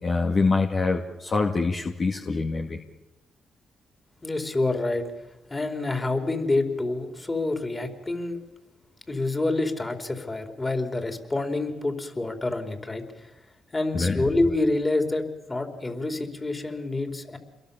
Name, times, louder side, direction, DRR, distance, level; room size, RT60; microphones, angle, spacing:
voice 1, 0.0-2.8 13.9-14.2, left 3 dB, 45° left, 2 dB, 2.1 m, -25 dB
voice 2, 4.2-5.0 5.5-8.4 9.1-13.3 13.7-17.4, left 2 dB, 25° left, 5 dB, 4.4 m, -27 dB
28.0 x 22.0 x 7.3 m, 1.1 s
supercardioid pair, 55°, 0 cm